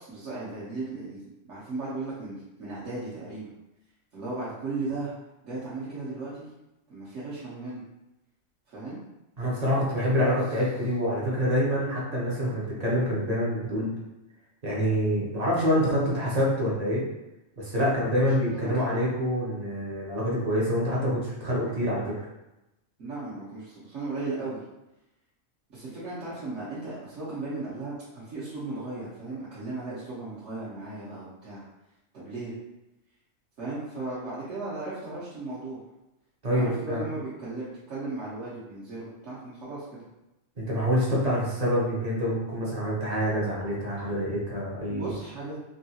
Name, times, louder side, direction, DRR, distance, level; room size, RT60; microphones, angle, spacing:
voice 1, 0.0-3.5 4.1-5.1 5.4-6.5 6.9-7.8 8.7-9.0 10.0-10.4 17.9-18.9 23.0-24.6 25.7-31.6 32.1-32.5 33.6-35.8 36.5-40.1 44.9-45.6, right 3 dB, 65° right, -10 dB, 1.2 m, -36 dB
voice 2, 9.4-13.9 14.6-17.0 17.6-22.1 36.4-37.0 40.6-45.1, equal, 40° right, -5 dB, 0.7 m, -26 dB
3.6 x 2.3 x 2.7 m, 0.94 s
omnidirectional pair, 1.4 m